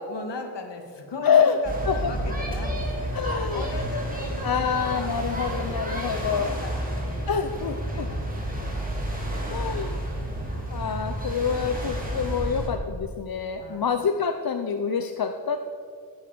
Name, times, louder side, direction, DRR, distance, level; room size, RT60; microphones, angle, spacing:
voice 1, 0.1-7.3 7.9-10.4 13.6-13.9, left 3 dB, 70° left, 4 dB, 2.6 m, -39 dB
voice 2, 1.2-1.6 1.8-2.1 3.1-3.6 4.4-6.5 7.3-8.1 9.5-10.0 10.7-15.6, left 6 dB, 55° left, 7 dB, 0.9 m, -26 dB
sound 1, 1.6-12.7, right 1 dB, 20° right, 3.8 m, -30 dB
16.5 x 10.5 x 6.9 m, 2.2 s
wide cardioid pair, 100°, 43 cm